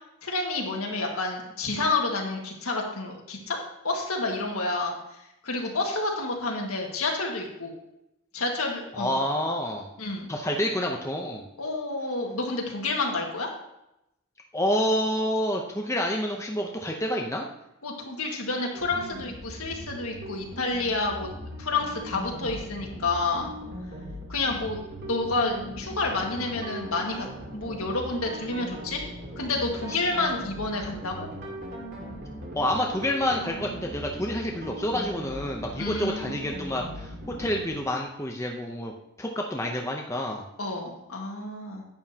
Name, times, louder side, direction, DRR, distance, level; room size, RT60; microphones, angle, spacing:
voice 1, 0.2-3.6 3.8-5.0 5.4-7.7 8.3-9.2 10.0-10.3 11.6-13.5 17.8-21.3 21.6-23.5 24.3-29.1 29.4-31.3 35.8-36.3 40.6-41.9, left 3 dB, 75° left, 0 dB, 1.8 m, -29 dB
voice 2, 9.0-9.9 10.3-11.5 14.5-17.5 29.9-30.0 32.5-37.1 37.4-38.9 39.2-40.4, equal, 15° left, 1 dB, 0.7 m, -28 dB
sound 1, 18.7-37.8, equal, 45° right, 2.2 m, -39 dB
10.5 x 9.4 x 2.9 m, 0.86 s
head